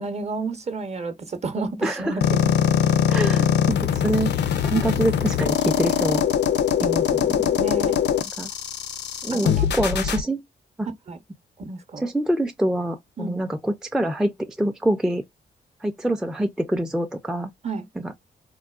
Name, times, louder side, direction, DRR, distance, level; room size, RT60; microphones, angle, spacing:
voice 1, 0.0-2.5 7.6-7.9 9.3-9.7 11.1-11.2 11.6-12.1 13.2-13.4 17.6-17.9, right 3 dB, 35° right, 0.7 m, -31 dB
voice 2, 1.8-2.2 3.1-4.3 4.6-6.2 6.8-7.6 8.4-8.5 9.2-10.4 10.8-10.9 12.0-15.2 15.8-17.5 18.0-18.1, right 1 dB, 5° right, 0.4 m, -25 dB
sound 1, 2.2-10.2, left 9 dB, 70° left, 0.5 m, -22 dB
3.7 x 2.1 x 2.3 m
cardioid pair, 80°, 19 cm